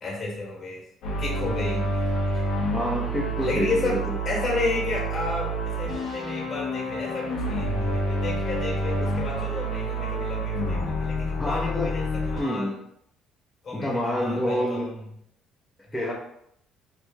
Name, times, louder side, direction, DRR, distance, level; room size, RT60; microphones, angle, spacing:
voice 1, 0.0-0.8 1.2-2.0 2.3-2.5 3.4-12.7 13.6-15.0 15.9-16.1, left 3 dB, 50° left, -3 dB, 1.4 m, -32 dB
sound 1, 1.0-12.4, right 1 dB, 70° left, 0.8 m, -28 dB
voice 2, 2.7-4.0 11.4-11.9 12.4-12.8 13.7-14.9 15.9-16.1, left 1 dB, 10° left, -5 dB, 0.7 m, -27 dB
3.1 x 2.5 x 2.2 m, 0.72 s
supercardioid pair, 70°, 0 cm